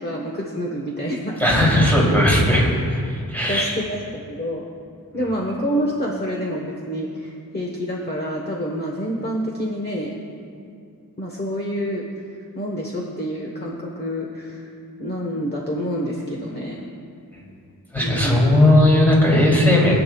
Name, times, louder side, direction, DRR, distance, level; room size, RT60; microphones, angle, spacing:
voice 1, 0.0-1.7 3.5-4.6 5.1-10.1 11.2-12.0 12.5-14.7 15.0-16.9 18.0-18.4, equal, 25° left, -1 dB, 1.2 m, -27 dB
voice 2, 1.4-2.7 3.3-3.7 17.9-19.9, left 1 dB, 5° left, -5 dB, 3.0 m, -16 dB
23.0 x 9.0 x 2.3 m, 2.4 s
wide cardioid pair, 120°, 37 cm